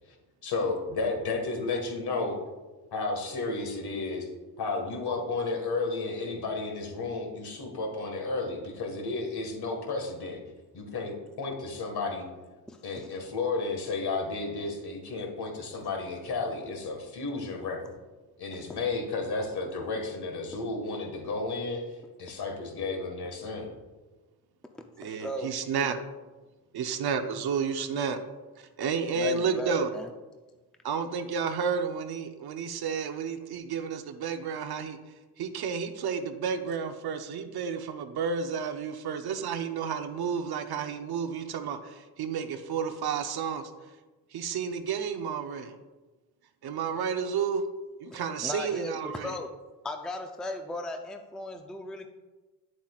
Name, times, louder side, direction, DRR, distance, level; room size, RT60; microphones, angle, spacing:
voice 1, 0.4-2.4 2.9-4.3 4.6-10.4 10.7-12.2 12.8-17.9 18.4-21.9 22.2-23.7, left 3 dB, 65° left, 2 dB, 1.8 m, -32 dB
voice 2, 12.7-13.1 18.5-18.8 25.0-25.6 29.1-30.1 48.1-49.5 49.8-52.1, left 1 dB, ahead, 4 dB, 0.5 m, -37 dB
voice 3, 25.0-26.0 26.7-28.2 28.8-29.9 30.8-35.0 35.4-43.7 44.3-45.8 46.6-47.6 48.0-49.3, right 6 dB, 60° right, 8 dB, 0.8 m, -31 dB
9.3 x 7.4 x 2.4 m, 1.2 s
cardioid pair, 95°, 42 cm